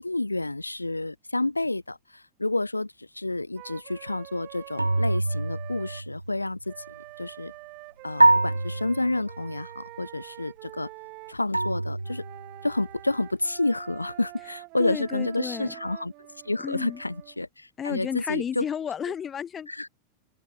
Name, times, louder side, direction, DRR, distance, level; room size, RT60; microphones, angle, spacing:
voice 1, 0.0-6.7 7.2-7.5 8.0-10.9 11.3-12.2 12.6-16.1 16.4-18.7 19.7-19.9, left 2 dB, 85° left, 2.5 m, -29 dB
Wind instrument woodwind instrument, 3.6-6.1 6.7-11.4 12.0-17.4, right 28 dB, 45° right, 4.2 m, -46 dB
sound 1, 4.8-6.4 8.2-9.6 11.5-12.8, right 2 dB, 85° right, 0.7 m, -25 dB
voice 2, 14.8-15.7 16.6-17.0 17.8-19.7, left 8 dB, 25° left, 3.2 m, -32 dB
open air
figure-of-eight pair, 90°, 0 cm